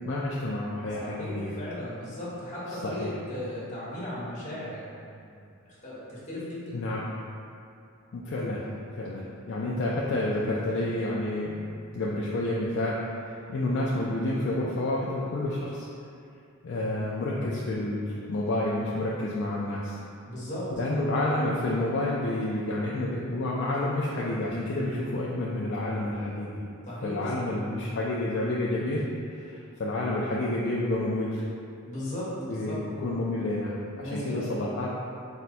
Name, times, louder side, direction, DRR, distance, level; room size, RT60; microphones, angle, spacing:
voice 1, 0.1-1.5 2.7-3.1 6.7-7.0 8.1-8.6 8.9-11.6 11.9-15.9 16.6-20.0 20.8-26.6 27.0-29.0 29.3-31.4 32.5-34.9, left 1 dB, 55° left, -5 dB, 0.4 m, -29 dB
voice 2, 1.0-6.6 20.3-20.7 26.8-27.6 31.8-32.8 34.0-34.4, left 1 dB, 35° left, -9 dB, 1.2 m, -36 dB
4.5 x 2.2 x 4.1 m, 2.5 s
head